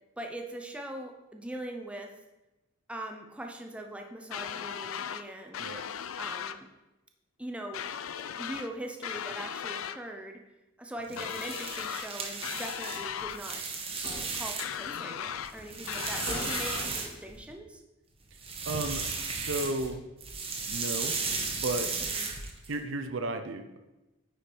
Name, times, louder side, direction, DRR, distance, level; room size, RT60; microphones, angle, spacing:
voice 1, 0.2-2.1 2.9-5.6 6.2-6.7 7.4-7.9 8.2-10.4 10.8-13.6 14.3-17.8 22.2-22.3, right 1 dB, 5° right, 3 dB, 0.6 m, -41 dB
sound 1, 4.3-5.2 5.5-6.6 7.7-8.7 9.0-10.0 11.2-12.1 12.4-13.4 14.6-15.5 15.9-16.9, left 9 dB, 85° left, 0.4 m, -37 dB
sound 2, 11.0-14.9 15.3-17.5 18.3-19.9 20.2-22.7, right 4 dB, 30° right, 1.1 m, -35 dB
sound 3, 13.8-14.6 15.6-15.7 16.3-17.3, left 1 dB, 60° left, 3.1 m, -41 dB
voice 2, 16.2-16.5 18.6-20.0 20.7-21.1 21.5-21.9 22.7-23.8, right 2 dB, 65° right, 8 dB, 0.7 m, -34 dB
9.1 x 5.1 x 4.5 m, 1.0 s
head